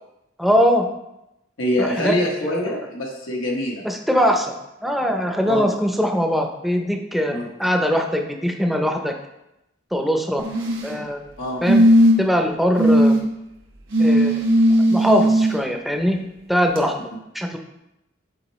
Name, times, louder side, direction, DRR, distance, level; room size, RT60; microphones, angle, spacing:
voice 1, 0.4-0.9 1.8-2.2 2.5-2.8 3.8-4.5 4.8-9.1 9.9-10.4 10.8-11.2 11.6-11.8 12.2-13.1 14.0-14.4 14.9-16.2 16.5-16.9 17.3-17.6, equal, ahead, 3 dB, 0.6 m, -21 dB
voice 2, 1.6-3.8 5.5-5.7 7.3-7.5 11.4-11.6, left 1 dB, 85° left, -2 dB, 1.2 m, -24 dB
sound 1, 10.4-11.0 11.7-12.3 12.8-13.2 13.9-15.5 16.8-16.9, equal, 70° right, 1.6 m, -16 dB
8.7 x 4.3 x 3.1 m, 0.89 s
head